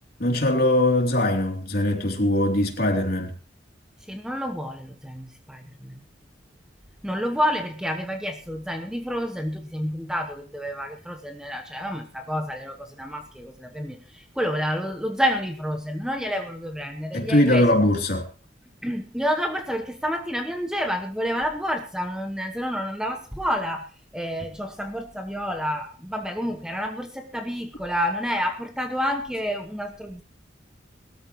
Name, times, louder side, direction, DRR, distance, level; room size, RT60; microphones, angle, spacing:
voice 1, 0.2-3.3 17.1-18.2, left 1 dB, 50° left, 3.3 m, -21 dB
voice 2, 4.1-6.0 7.0-17.8 18.8-23.9 24.1-30.2, equal, 5° right, 1.0 m, -29 dB
21.0 x 13.5 x 3.1 m
head